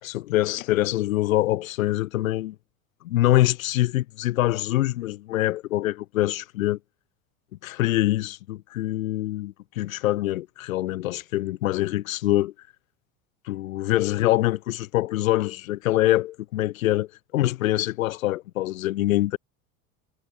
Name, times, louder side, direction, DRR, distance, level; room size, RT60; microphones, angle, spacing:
voice 1, 0.0-2.6 3.0-6.8 7.6-12.5 13.5-17.1 17.3-19.4, left 16 dB, 85° left, 1.9 m, -24 dB
supercardioid pair, 105°, 40 cm